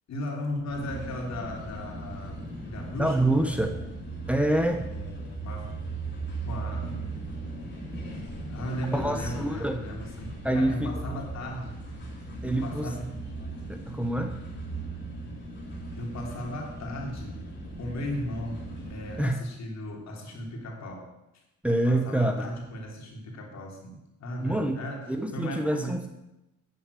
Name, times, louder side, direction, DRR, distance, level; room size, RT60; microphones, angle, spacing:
voice 1, 0.1-3.9 4.8-5.7 6.5-7.0 8.5-11.8 12.4-13.2 16.0-17.4 17.8-21.4 21.9-26.1, left 1 dB, 60° left, 1 dB, 3.3 m, -37 dB
sound 1, 0.7-19.3, right 2 dB, 35° left, 4.6 m, -38 dB
voice 2, 3.0-3.7 4.3-4.9 8.9-9.8 10.4-10.9 12.4-12.9 13.7-14.3 19.2-19.4 21.6-22.5 24.4-24.8 25.1-26.1, right 1 dB, 5° right, 5 dB, 1.1 m, -26 dB
9.4 x 7.2 x 8.4 m, 0.91 s
cardioid pair, 90°, 30 cm